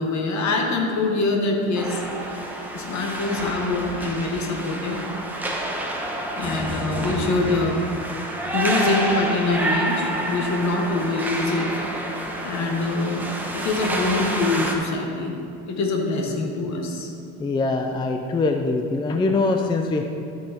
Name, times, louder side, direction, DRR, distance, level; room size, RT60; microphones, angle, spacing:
voice 1, 0.0-2.0 2.7-5.1 6.3-7.8 8.5-11.7 12.4-15.4 15.7-17.1, left 3 dB, 50° left, 2 dB, 1.6 m, -24 dB
sound 1, 1.7-14.7, right 1 dB, 5° right, 1.1 m, -28 dB
voice 2, 17.4-20.0, left 3 dB, 15° left, 4 dB, 0.4 m, -23 dB
13.5 x 5.6 x 4.3 m, 2.6 s
cardioid pair, 120°, 35 cm